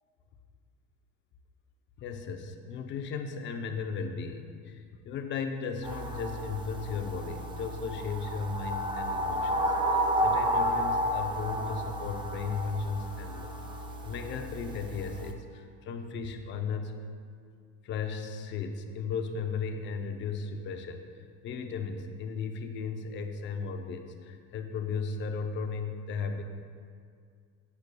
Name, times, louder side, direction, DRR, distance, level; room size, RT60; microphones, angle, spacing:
voice 1, 2.0-13.6 14.0-17.0 17.8-21.0 21.4-26.4, left 5 dB, 35° left, 5 dB, 0.6 m, -36 dB
sound 1, 5.8-15.3, right 1 dB, 15° right, 0.4 m, -32 dB
11.5 x 8.4 x 2.3 m, 2.2 s
cardioid pair, 150°, 34 cm